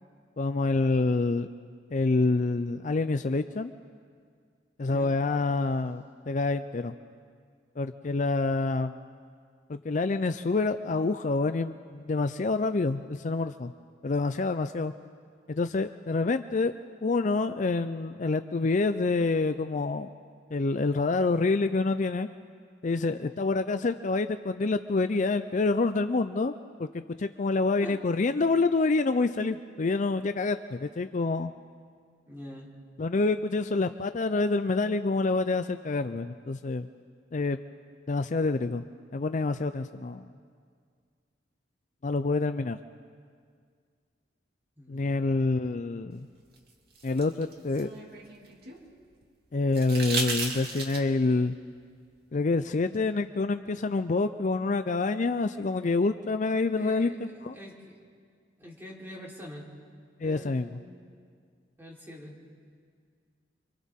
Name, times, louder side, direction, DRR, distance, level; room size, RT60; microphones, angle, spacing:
voice 1, 0.4-1.5 1.9-3.7 4.8-6.9 7.8-9.0 9.7-13.7 14.0-14.9 15.5-16.7 17.0-20.1 20.5-22.3 22.8-26.5 26.8-26.9 27.2-31.5 33.0-36.9 37.3-37.6 38.1-38.8 39.1-40.2 42.0-42.8 44.9-46.3 47.0-47.9 49.5-51.5 52.3-57.6 60.2-60.8, left 3 dB, 45° left, 10 dB, 0.5 m, -27 dB
voice 2, 4.8-5.2 27.8-28.0 32.3-32.7 44.8-45.2 56.7-57.9 58.6-59.6 60.2-61.0 61.8-62.3, left 1 dB, 15° right, -4 dB, 3.9 m, -45 dB
sound 1, 46.6-48.8 49.7-51.3 52.9-53.0, right 3 dB, 60° right, 2.7 m, -35 dB
30.0 x 25.0 x 3.7 m, 2.1 s
head